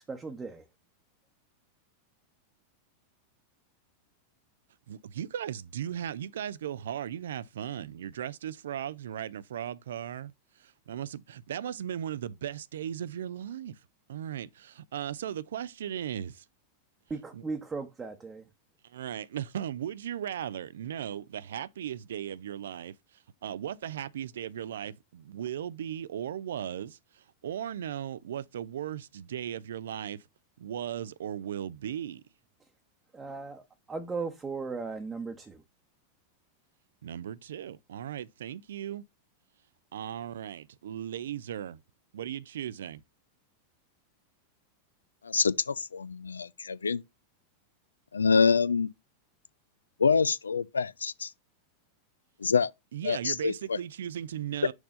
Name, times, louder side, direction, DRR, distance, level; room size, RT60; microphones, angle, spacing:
voice 1, 0.1-0.6 17.1-18.5 33.1-35.6, right 4 dB, 15° right, 0.9 m, -37 dB
voice 2, 4.9-10.3 10.6-13.8 14.1-16.4 17.3-17.4 18.8-23.0 23.4-30.2 30.6-32.2 37.0-39.0 39.9-41.8 42.1-43.0 52.9-54.7, right 10 dB, 60° right, 0.4 m, -37 dB
voice 3, 45.2-47.0 48.1-48.9 50.0-51.3 52.4-52.7 53.0-53.8, left 5 dB, 75° left, 0.4 m, -26 dB
6.3 x 3.3 x 5.1 m
figure-of-eight pair, 90°, 0 cm